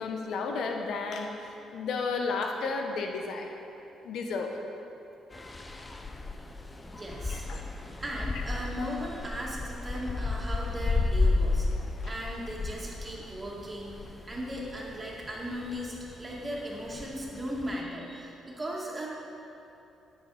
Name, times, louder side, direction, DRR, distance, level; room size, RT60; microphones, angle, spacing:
voice 1, 0.0-1.3 1.7-3.5 4.0-4.5 7.3-7.6 8.8-8.9 12.0-12.1, left 4 dB, 70° left, 3 dB, 1.0 m, -32 dB
sound 1, 5.3-17.8, left 3 dB, 20° left, 0.7 m, -33 dB
voice 2, 6.9-7.4 8.0-11.7 12.1-19.1, equal, 25° right, -4 dB, 2.1 m, -37 dB
9.8 x 8.5 x 4.9 m, 2.8 s
cardioid pair, 90°, 0 cm